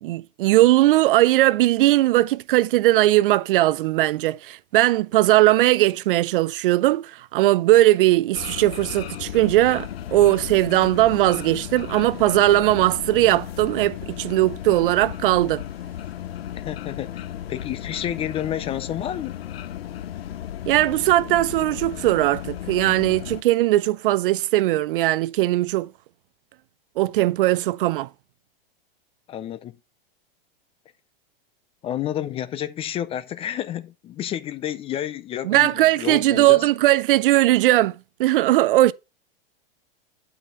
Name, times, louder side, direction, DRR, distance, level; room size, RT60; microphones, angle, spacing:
voice 1, 0.0-15.6 20.7-25.9 27.0-28.1 35.4-38.9, right 16 dB, 65° right, 0.5 m, -19 dB
sound 1, 8.3-23.4, left 11 dB, 85° left, 0.6 m, -35 dB
voice 2, 16.5-17.2 17.5-19.3 29.3-29.7 31.8-36.7, left 11 dB, 20° left, 0.4 m, -30 dB
8.5 x 5.7 x 3.8 m
hypercardioid pair, 120°, 30 cm